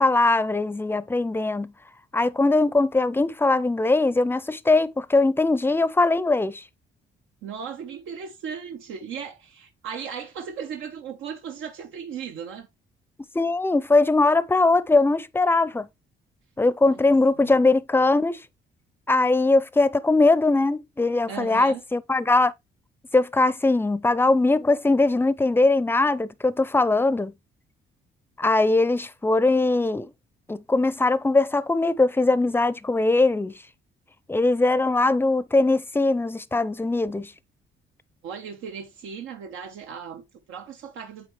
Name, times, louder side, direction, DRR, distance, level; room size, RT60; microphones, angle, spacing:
voice 1, 0.0-1.7 2.1-6.6 13.3-15.9 16.6-18.4 19.1-22.5 23.1-27.3 28.4-30.1 30.5-33.5 34.3-37.3, left 2 dB, 10° left, 0.5 m, -21 dB
voice 2, 7.4-12.7 16.8-17.6 21.3-21.8 38.2-41.3, right 7 dB, 85° right, 1.0 m, -37 dB
8.7 x 3.5 x 3.2 m
cardioid pair, 90°, 20 cm